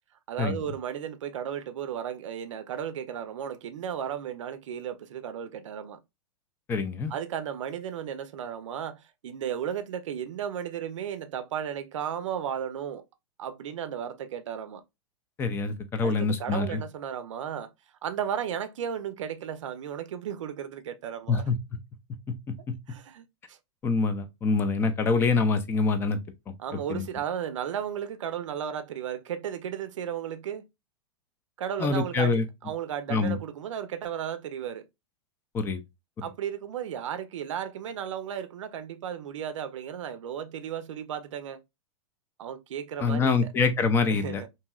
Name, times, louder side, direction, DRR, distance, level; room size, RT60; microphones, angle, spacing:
voice 1, 0.3-6.0 7.1-13.0 13.4-14.8 16.0-17.7 18.0-21.5 22.9-23.6 26.6-30.7 31.6-34.9 36.2-41.6 42.4-43.5 44.0-44.5, right 9 dB, 85° right, 0.5 m, -34 dB
voice 2, 6.7-7.1 15.4-16.8 21.3-21.6 22.3-22.7 23.8-26.2 26.9-27.1 31.8-32.4 33.1-33.4 35.5-35.8 43.0-44.4, left 4 dB, 15° left, 0.4 m, -25 dB
2.9 x 2.7 x 2.2 m
hypercardioid pair, 140°, 16 cm